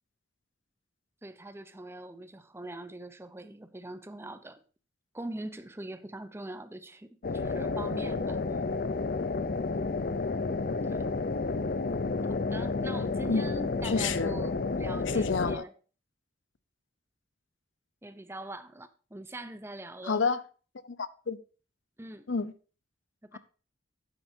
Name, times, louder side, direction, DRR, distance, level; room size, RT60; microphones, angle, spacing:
voice 1, 1.2-4.6 5.1-8.4 10.8-11.1 12.5-15.7 18.0-20.2 22.0-22.3 23.2-23.4, right 1 dB, 15° right, 0.6 m, -42 dB
sound 1, 7.2-15.6, left 3 dB, 50° left, 0.5 m, -31 dB
voice 2, 13.8-14.4 15.1-15.6 20.1-20.4 20.8-21.4 22.3-22.5 23.3-23.4, left 4 dB, 90° left, 0.7 m, -29 dB
11.5 x 9.0 x 2.7 m
head